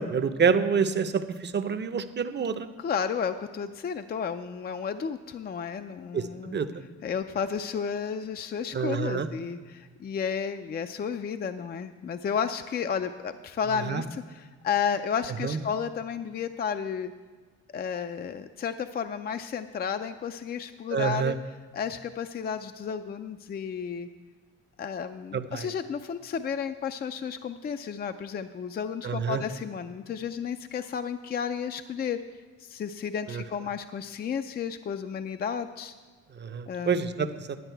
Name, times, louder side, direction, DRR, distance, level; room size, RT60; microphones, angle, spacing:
voice 1, 0.0-2.7 6.1-6.7 8.7-9.3 13.9-14.0 15.4-15.6 20.9-21.3 25.3-25.7 29.0-29.4 33.3-33.4 36.4-37.6, right 6 dB, 35° right, 11 dB, 0.7 m, -27 dB
voice 2, 2.8-6.6 7.0-17.1 17.7-21.3 21.7-24.1 24.8-32.2 32.6-35.9 36.7-37.3, left 7 dB, 35° left, 9 dB, 0.4 m, -32 dB
11.0 x 8.9 x 4.6 m, 1.5 s
cardioid pair, 90°, 30 cm